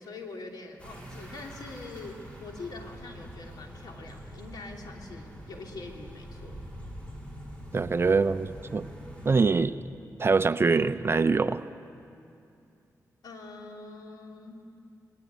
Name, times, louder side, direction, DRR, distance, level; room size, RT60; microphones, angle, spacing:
voice 1, 0.0-6.6 13.2-14.7, left 3 dB, 85° left, 1 dB, 3.1 m, -43 dB
sound 1, 0.8-9.4, equal, 15° left, 4.6 m, -44 dB
voice 2, 7.7-8.9 9.2-9.7 10.2-11.6, right 4 dB, 35° right, 11 dB, 0.6 m, -24 dB
27.0 x 20.5 x 9.4 m, 2.6 s
cardioid pair, 90°, 7 cm